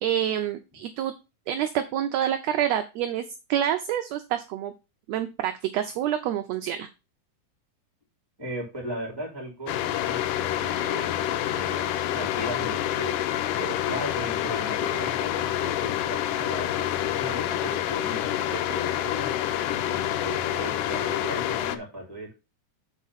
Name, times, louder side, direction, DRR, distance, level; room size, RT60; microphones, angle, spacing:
voice 1, 0.0-1.1 1.5-3.2 3.5-4.7 5.1-6.9, right 10 dB, 80° right, 8 dB, 1.6 m, -27 dB
voice 2, 8.4-22.3, equal, 10° right, 0 dB, 2.8 m, -37 dB
sound 1, 9.7-21.8, left 12 dB, 90° left, 2.2 m, -27 dB
7.2 x 4.2 x 5.5 m, 0.28 s
omnidirectional pair, 3.6 m